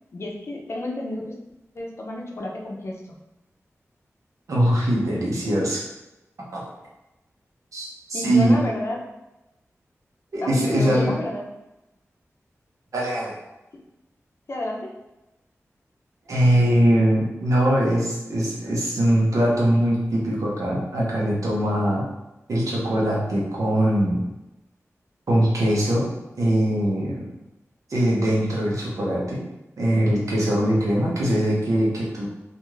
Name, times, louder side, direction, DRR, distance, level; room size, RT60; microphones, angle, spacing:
voice 1, 0.1-1.4 1.7-3.2 8.1-9.0 10.4-11.4 13.7-13.8 14.5-14.9, left 1 dB, 55° left, 0 dB, 0.5 m, -31 dB
voice 2, 4.5-5.8 6.5-6.6 7.7-8.6 10.3-11.2 12.9-13.3 16.3-22.0 22.5-24.2 25.3-26.1 26.4-27.2 27.9-29.4 29.8-32.3, right 1 dB, 85° right, -4 dB, 0.8 m, -21 dB
2.5 x 2.4 x 3.1 m, 0.97 s
wide cardioid pair, 95°, 5 cm